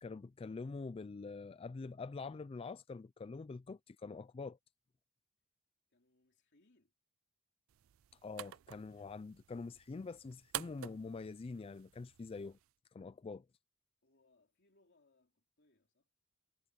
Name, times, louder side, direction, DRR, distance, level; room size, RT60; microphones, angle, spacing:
voice 1, 0.0-4.6 8.1-12.6 12.9-13.5, left 4 dB, 25° left, 0.3 m, -45 dB
voice 2, 5.9-6.9 14.0-16.1, left 2 dB, 60° left, 3.0 m, -73 dB
sound 1, 7.7-12.7, right 13 dB, 75° right, 0.4 m, -50 dB
head